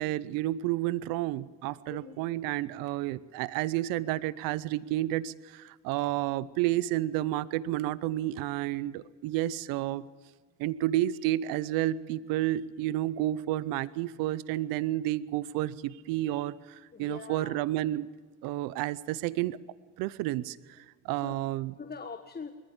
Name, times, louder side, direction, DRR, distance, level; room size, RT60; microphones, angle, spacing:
voice 1, 0.0-10.1 10.6-18.1 18.4-19.6 20.0-21.7, right 14 dB, 90° right, 19 dB, 0.7 m, -31 dB
voice 2, 16.9-17.6 21.2-21.4 21.8-22.5, left 5 dB, 30° left, 7 dB, 1.5 m, -42 dB
21.5 x 14.5 x 8.8 m, 1.4 s
supercardioid pair, 75°, 33 cm